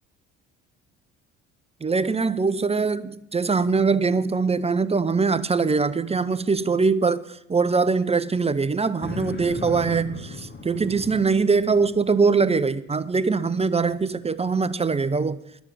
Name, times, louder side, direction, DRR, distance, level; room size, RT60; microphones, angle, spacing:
voice 1, 1.8-15.4, right 4 dB, 20° right, 0.7 m, -22 dB
sound 1, 9.0-12.1, left 3 dB, 30° left, 3.2 m, -37 dB
11.5 x 7.2 x 9.8 m
hypercardioid pair, 65°, 35 cm